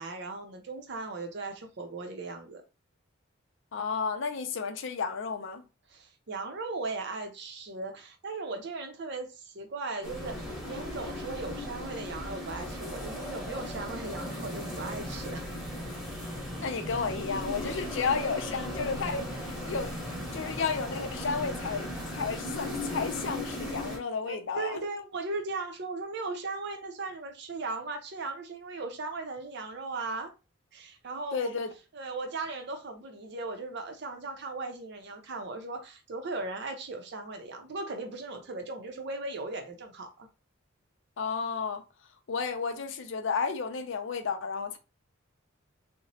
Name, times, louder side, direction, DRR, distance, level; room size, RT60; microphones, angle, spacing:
voice 1, 0.0-2.6 5.9-15.5 24.2-30.3 30.7-31.6 31.9-40.3, right 3 dB, 55° right, 0.6 m, -37 dB
voice 2, 3.7-5.6 16.6-24.9 31.3-31.7 41.2-41.8 42.3-44.8, left 5 dB, 65° left, 0.5 m, -32 dB
sound 1, 10.0-24.0, left 1 dB, 5° right, 0.9 m, -37 dB
2.9 x 2.0 x 2.7 m
head